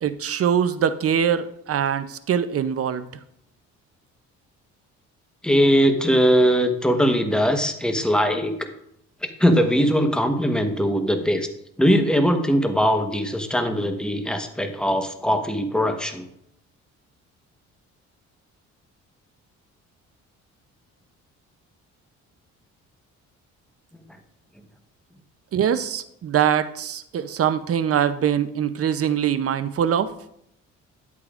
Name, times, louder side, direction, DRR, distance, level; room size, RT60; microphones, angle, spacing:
voice 1, 0.0-3.1 25.5-30.1, right 8 dB, 50° right, 12 dB, 0.6 m, -23 dB
voice 2, 5.4-8.6 9.2-11.5 11.8-16.3, equal, 5° left, 5 dB, 1.1 m, -20 dB
10.5 x 8.3 x 2.5 m, 0.74 s
cardioid pair, 90°, 30 cm